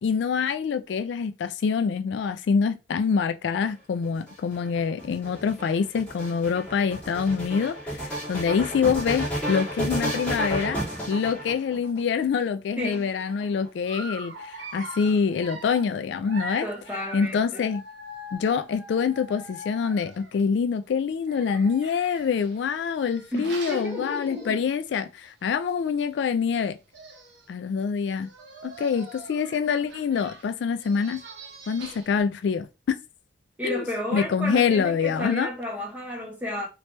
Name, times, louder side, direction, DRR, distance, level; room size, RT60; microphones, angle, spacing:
voice 1, 0.0-10.8 11.1-16.7 17.1-17.8 18.3-26.8 27.5-28.3 28.6-31.2 31.7-33.0 33.6-33.8 34.1-35.5, left 6 dB, 65° left, 0.3 m, -25 dB
sound 1, 4.0-12.0 12.8-13.7, equal, 5° left, 1.6 m, -32 dB
voice 2, 12.8-13.1 16.6-17.7 23.3-24.6 33.6-36.7, left 1 dB, 10° right, 1.1 m, -32 dB
Dog, 13.9-20.4 21.2-24.8 25.2-25.4 25.7-25.8 26.6-26.7 26.9-27.5 28.1-32.2, right 1 dB, 65° right, 0.9 m, -43 dB
2.9 x 2.9 x 3.2 m
head